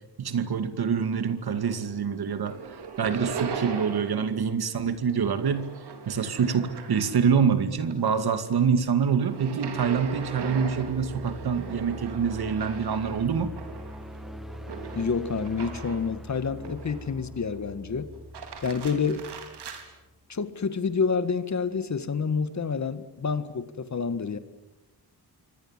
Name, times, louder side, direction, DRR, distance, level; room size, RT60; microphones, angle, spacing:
voice 1, 0.2-2.5 3.0-5.8 6.1-13.5, right 6 dB, 65° right, 10 dB, 2.5 m, -26 dB
sound 1, 1.3-2.0 2.3-4.3 4.6-7.4 7.8-16.1 16.6-17.3 18.1-19.9, right 5 dB, 80° right, 4.2 m, -39 dB
sound 2, 9.6-20.3, equal, ahead, 1.5 m, -43 dB
voice 2, 14.9-18.1 18.6-19.3 20.3-24.4, left 5 dB, 45° left, 12 dB, 1.8 m, -28 dB
28.0 x 24.5 x 7.6 m, 1.0 s
cardioid pair, 105°, 40 cm